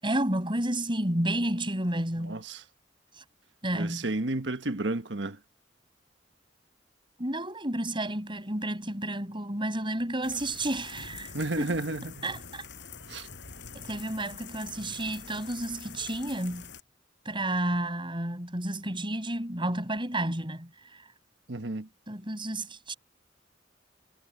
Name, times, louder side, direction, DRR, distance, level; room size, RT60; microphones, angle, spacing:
voice 1, 0.0-2.4 3.2-3.3 3.6-4.1 7.2-11.8 12.2-12.7 13.7-16.7 17.3-21.0 22.1-22.9, right 1 dB, 30° right, 6.9 m, -31 dB
voice 2, 2.2-2.6 3.7-5.4 11.3-12.3 13.1-13.3 21.5-21.9, right 2 dB, 80° right, 1.4 m, -32 dB
sound 1, 10.2-16.8, left 6 dB, 75° left, 7.1 m, -45 dB
head